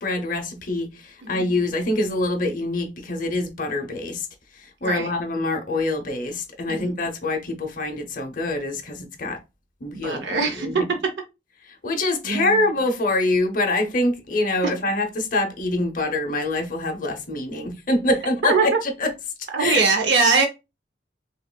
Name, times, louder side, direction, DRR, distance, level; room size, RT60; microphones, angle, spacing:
voice 1, 0.0-4.3 4.6-9.4 9.8-10.7 11.8-19.1 19.6-19.8, left 2 dB, 50° left, 0.7 m, -25 dB
voice 2, 10.0-10.9 12.2-12.7 14.6-14.7 18.4-18.6 19.5-20.5, right 4 dB, 70° right, 0.6 m, -22 dB
5.3 x 2.4 x 2.2 m
head